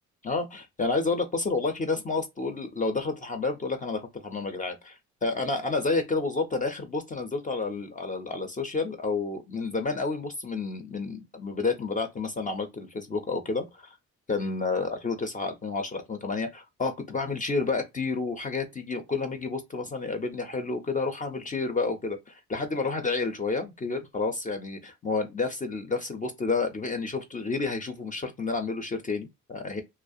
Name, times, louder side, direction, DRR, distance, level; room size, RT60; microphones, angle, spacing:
voice 1, 0.2-14.0 14.3-29.8, left 3 dB, 25° left, 0.5 m, -30 dB
2.3 x 2.0 x 2.5 m
cardioid pair, 90°, 30 cm